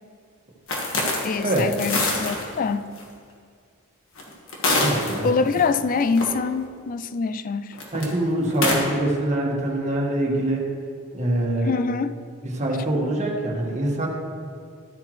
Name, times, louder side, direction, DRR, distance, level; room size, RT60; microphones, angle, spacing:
sound 1, 0.7-2.4 3.0-3.1 4.2-5.6 6.0-6.2 7.7-8.0 8.5-8.8, left 2 dB, 65° left, 1.7 m, -24 dB
voice 1, 1.2-2.9 5.2-7.8 11.6-12.2, left 4 dB, 40° left, 12 dB, 0.4 m, -24 dB
voice 2, 4.7-5.3 7.9-10.7 11.1-11.7 12.4-14.1, right 1 dB, 35° right, -2 dB, 1.6 m, -24 dB
13.0 x 8.2 x 3.2 m, 2.2 s
head